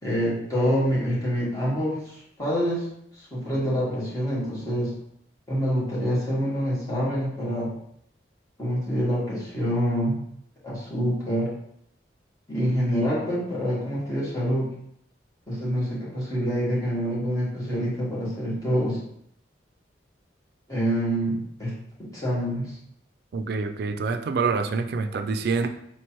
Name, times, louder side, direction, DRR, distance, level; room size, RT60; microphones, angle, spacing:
voice 1, 0.0-2.9 3.1-4.9 5.5-7.7 8.6-10.2 10.6-11.5 12.5-14.7 15.5-19.0 20.7-21.7 22.1-22.8, equal, 20° left, -8 dB, 1.5 m, -26 dB
voice 2, 23.3-25.7, right 4 dB, 60° right, 8 dB, 0.3 m, -26 dB
4.5 x 3.1 x 3.0 m, 0.74 s
head